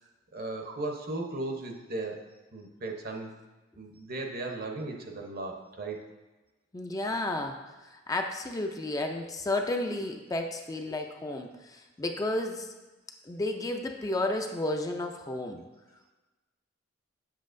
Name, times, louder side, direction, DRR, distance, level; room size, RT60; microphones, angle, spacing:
voice 1, 0.3-2.2 2.5-3.3 3.8-6.0, right 2 dB, 50° right, 2 dB, 0.8 m, -36 dB
voice 2, 6.7-12.7 13.2-15.6, left 2 dB, 20° left, 3 dB, 0.4 m, -32 dB
7.4 x 7.0 x 2.6 m, 1.1 s
head